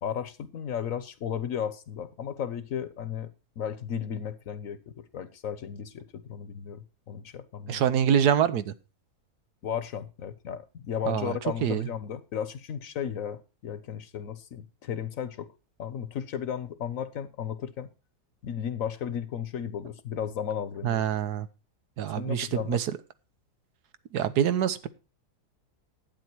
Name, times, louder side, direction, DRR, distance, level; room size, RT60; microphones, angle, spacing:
voice 1, 0.0-3.3 3.6-7.8 9.6-15.5 15.8-17.9 18.4-21.0 22.1-22.8, left 8 dB, 60° left, 14 dB, 1.2 m, -34 dB
voice 2, 7.7-8.7 11.1-11.9 20.8-21.5 22.0-23.0 24.1-24.9, right 9 dB, 85° right, 13 dB, 1.4 m, -25 dB
11.5 x 8.8 x 4.5 m, 0.32 s
omnidirectional pair, 1.7 m